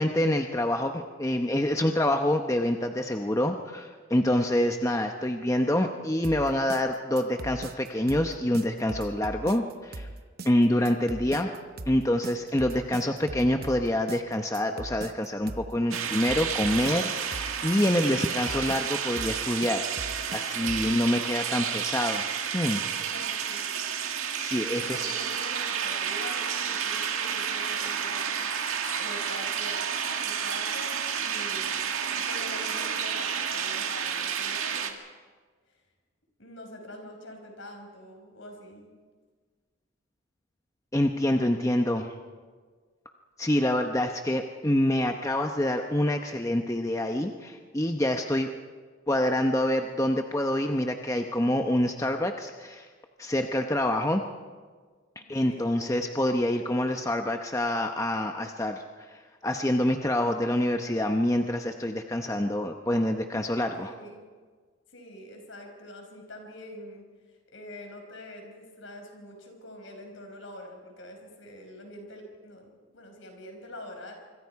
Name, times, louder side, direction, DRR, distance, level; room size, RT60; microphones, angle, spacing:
voice 1, 0.0-10.1 10.4-11.5 11.9-19.9 20.3-22.2 22.5-22.8 24.4-25.1 40.9-42.1 43.4-48.5 49.1-52.9 53.2-54.2 55.3-63.9, left 1 dB, 15° left, 4 dB, 0.8 m, -26 dB
sound 1, 6.2-20.9, right 2 dB, 45° right, 0.8 m, -40 dB
voice 2, 10.4-11.1 20.6-21.1 22.9-23.7 24.7-35.0 35.7-35.8 36.4-38.9 55.4-55.9 63.8-64.3 64.9-74.1, left 1 dB, 65° left, 3 dB, 5.3 m, -45 dB
sound 2, 15.9-34.9, right 7 dB, 90° right, 1.9 m, -31 dB
25.5 x 24.5 x 4.7 m, 1.5 s
head